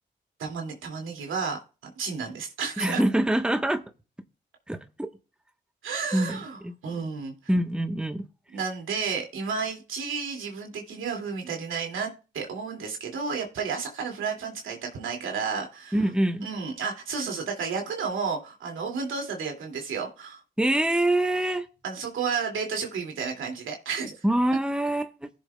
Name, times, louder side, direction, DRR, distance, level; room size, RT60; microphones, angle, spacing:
voice 1, 0.4-1.6 2.0-3.0 5.8-7.3 8.5-16.0 16.4-20.4 21.8-24.2, right 5 dB, 80° right, 2.3 m, -32 dB
voice 2, 2.8-3.8 4.7-4.8 6.1-6.4 6.6-6.7 7.5-8.2 15.9-16.5 20.6-21.7 24.2-25.3, right 1 dB, 5° right, 1.1 m, -24 dB
16.5 x 6.9 x 2.2 m
supercardioid pair, 45°, 20 cm